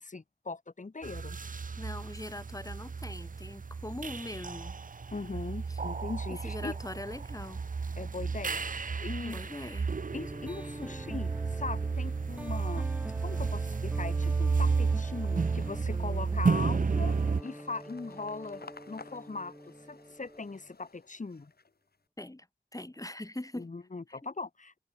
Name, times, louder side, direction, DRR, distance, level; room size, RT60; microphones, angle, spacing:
voice 1, 0.0-1.4 5.1-6.7 8.0-9.5 10.1-12.9 13.2-17.1 17.4-18.6 18.9-19.5 19.9-21.5 23.5-24.8, left 3 dB, 50° left, 1.8 m, -40 dB
sound 1, 1.0-17.4, right 5 dB, 55° right, 0.7 m, -32 dB
voice 2, 1.8-4.8 5.7-5.8 6.3-7.6 9.2-9.9 22.2-22.5 22.7-23.7 24.1-24.2, left 1 dB, 20° left, 5.3 m, -41 dB
sound 2, 7.6-8.1 8.5-22.0, left 4 dB, 70° left, 3.6 m, -56 dB
sound 3, 10.1-20.7, right 1 dB, 10° right, 3.7 m, -45 dB
wide cardioid pair, 85°, 17 cm